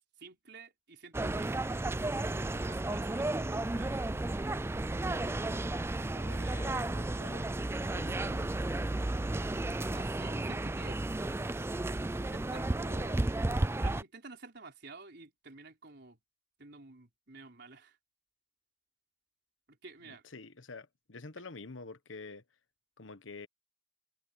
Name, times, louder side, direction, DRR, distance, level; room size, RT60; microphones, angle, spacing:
voice 1, 0.2-1.9 2.3-4.3 6.2-6.6 8.2-8.9 9.3-11.0 12.1-13.2 13.8-16.2 16.6-18.0 19.7-20.2, right 3 dB, 60° right, 4.6 m, -52 dB
sound 1, 1.1-14.0, right 2 dB, 15° right, 0.4 m, -33 dB
voice 2, 6.1-7.5 7.9-8.3 20.0-22.4 23.0-23.5, left 3 dB, 90° left, 1.2 m, -48 dB
head